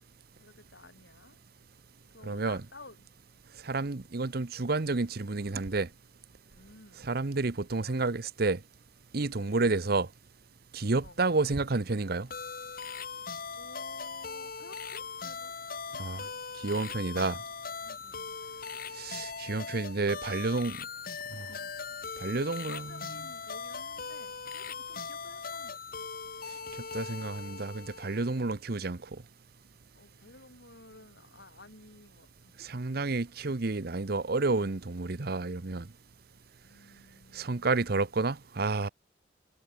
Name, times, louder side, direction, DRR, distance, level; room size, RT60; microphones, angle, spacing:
voice 1, 0.4-1.4 2.1-3.0 6.5-7.1 7.8-8.0 9.4-9.5 11.0-11.2 13.6-15.5 15.9-16.3 17.8-18.4 20.3-20.4 21.5-21.7 22.2-26.0 30.0-32.5 33.0-33.2 36.6-37.8, left 2 dB, 70° left, 7.3 m, -53 dB
voice 2, 2.2-2.6 3.6-5.9 7.0-8.6 9.1-10.1 10.7-12.3 16.0-16.2 16.6-17.4 19.0-20.8 21.3-21.5 22.2-22.9 26.9-29.0 32.6-35.9 37.3-38.9, right 3 dB, 55° right, 0.9 m, -30 dB
sound 1, 12.3-28.5, left 5 dB, 55° left, 3.5 m, -40 dB
head